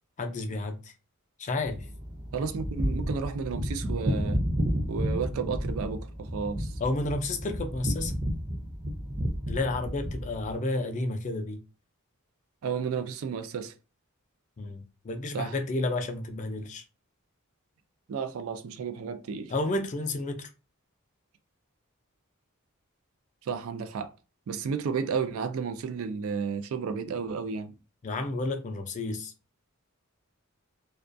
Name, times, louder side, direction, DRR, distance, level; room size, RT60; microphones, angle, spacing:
voice 1, 0.2-0.9 1.4-1.9 6.8-8.1 9.5-11.6 14.6-16.8 19.5-20.5 28.0-29.3, left 2 dB, 35° left, 0.4 m, -31 dB
sound 1, 1.6-10.5, equal, 20° right, 0.5 m, -31 dB
voice 2, 2.3-4.4 4.9-6.7 12.6-13.7 15.3-15.5 18.1-19.5 23.4-24.1 24.5-27.7, right 5 dB, 70° right, 0.3 m, -32 dB
2.3 x 2.3 x 2.5 m
head